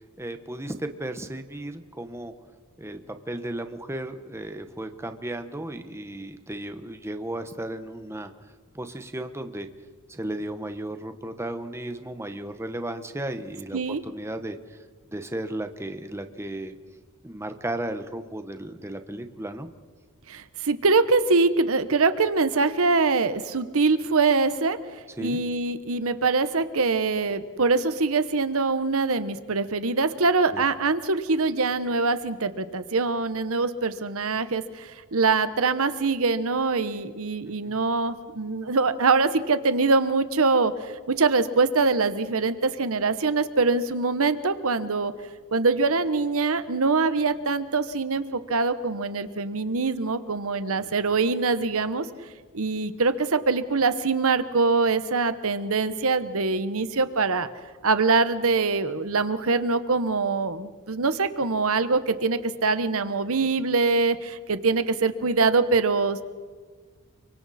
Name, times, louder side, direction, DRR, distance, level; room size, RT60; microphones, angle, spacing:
voice 1, 0.2-2.3 2.8-3.0 3.3-8.3 8.7-9.7 10.1-14.8 15.1-16.7 17.2-19.7 25.2-25.4 30.5-30.6 37.6-37.7 50.8-50.9, right 1 dB, 10° right, 7 dB, 1.2 m, -34 dB
voice 2, 20.3-24.8 25.2-45.1 45.5-52.0 52.5-57.5 57.8-66.2, right 4 dB, 65° right, 12 dB, 1.1 m, -24 dB
30.0 x 24.0 x 4.3 m, 1.5 s
head